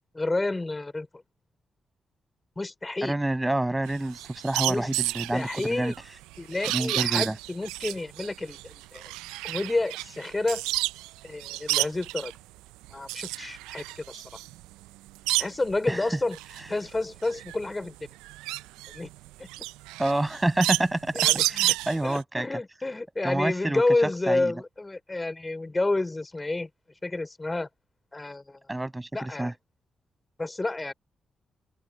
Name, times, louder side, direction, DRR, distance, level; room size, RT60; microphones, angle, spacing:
voice 1, 0.1-1.1 2.6-3.1 4.7-4.9 5.3-6.0 6.4-9.0 9.4-10.6 11.2-12.3 12.9-14.2 15.4-16.4 16.7-18.1 18.9-19.1 19.4-19.5 21.1-21.5 22.0-26.7 27.0-27.7 28.1-28.6 29.1-29.5 30.4-30.9, left 2 dB, 25° left, 4.3 m, -29 dB
voice 2, 3.0-5.9 6.7-7.3 15.9-16.0 20.0-22.5 23.2-23.8 24.3-24.5 28.7-29.5, right 1 dB, 15° right, 8.0 m, -28 dB
sound 1, 3.9-11.1 11.4-12.4 12.8-15.8 16.2-22.2, right 19 dB, 85° right, 0.4 m, -30 dB
open air
hypercardioid pair, 40°, 0 cm